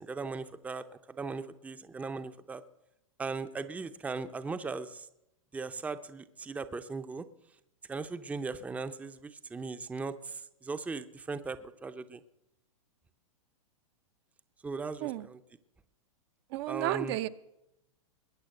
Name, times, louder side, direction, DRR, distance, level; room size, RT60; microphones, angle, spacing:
voice 1, 0.0-2.6 3.2-5.1 5.5-7.2 7.9-12.2 14.6-15.4 16.7-17.1, right 4 dB, 10° right, 11 dB, 0.6 m, -38 dB
voice 2, 16.5-17.3, right 15 dB, 50° right, 12 dB, 0.7 m, -32 dB
20.5 x 8.6 x 6.5 m, 0.86 s
hypercardioid pair, 125°, 18 cm